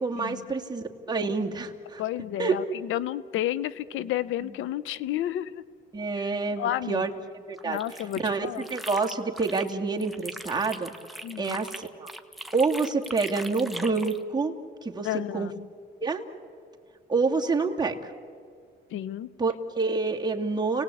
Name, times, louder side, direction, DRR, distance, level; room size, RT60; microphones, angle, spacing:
voice 1, 0.0-2.0 2.4-2.6 4.4-4.5 5.9-7.8 8.2-10.9 11.4-12.1 12.5-14.6 14.8-15.1 15.3-15.5 16.0-16.2 17.1-18.1 19.4-20.8, right 4 dB, 20° right, 1 dB, 2.4 m, -28 dB
voice 2, 2.0-5.6 6.6-7.1 7.6-8.7 11.2-11.6 15.0-15.5 18.9-19.3, left 12 dB, 85° left, 17 dB, 0.8 m, -31 dB
sound 1, 7.6-9.7 10.0-14.2, right 1 dB, ahead, 1.6 m, -41 dB
30.0 x 19.0 x 8.6 m, 2.3 s
cardioid pair, 90°, 20 cm